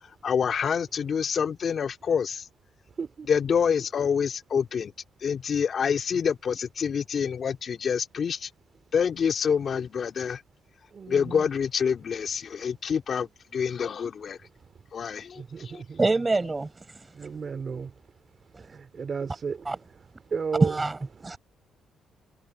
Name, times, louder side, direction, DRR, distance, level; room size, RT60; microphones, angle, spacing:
voice 1, 0.2-2.5 3.3-4.9 5.2-8.5 8.9-10.4 11.1-14.4 14.9-15.8, left 7 dB, 50° left, 2.5 m, -27 dB
voice 2, 10.9-11.5 15.4-16.0 17.1-17.9 18.7-19.6 20.3-20.8, right 5 dB, 45° right, 2.8 m, -33 dB
voice 3, 16.0-16.7 19.7-19.8 20.6-21.4, right 3 dB, 20° right, 5.3 m, -24 dB
cardioid pair, 90°, 0 cm